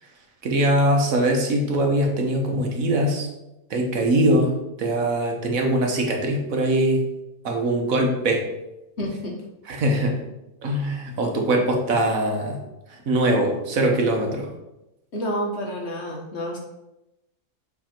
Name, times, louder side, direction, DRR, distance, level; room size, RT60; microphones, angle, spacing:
voice 1, 0.4-3.3 3.7-4.5 4.8-7.0 7.4-8.4 9.7-10.2 10.6-12.6 12.9-14.5, right 1 dB, 75° right, 2 dB, 1.5 m, -22 dB
voice 2, 9.0-9.4 15.1-16.6, equal, 50° left, -1 dB, 1.4 m, -29 dB
7.4 x 3.5 x 4.4 m, 0.93 s
omnidirectional pair, 1.5 m